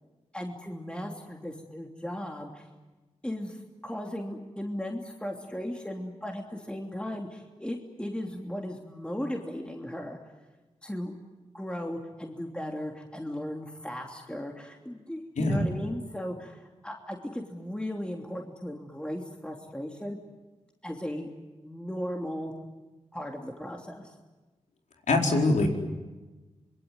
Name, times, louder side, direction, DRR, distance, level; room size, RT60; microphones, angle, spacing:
voice 1, 0.3-2.7 3.2-10.2 10.8-11.1 11.5-20.2 20.8-21.3 21.6-22.5 23.1-24.1, equal, 10° left, 1 dB, 3.0 m, -36 dB
voice 2, 15.4-15.7 25.1-25.7, left 2 dB, 85° left, 1 dB, 4.4 m, -23 dB
26.0 x 22.0 x 9.6 m, 1.2 s
cardioid pair, 60°, 12 cm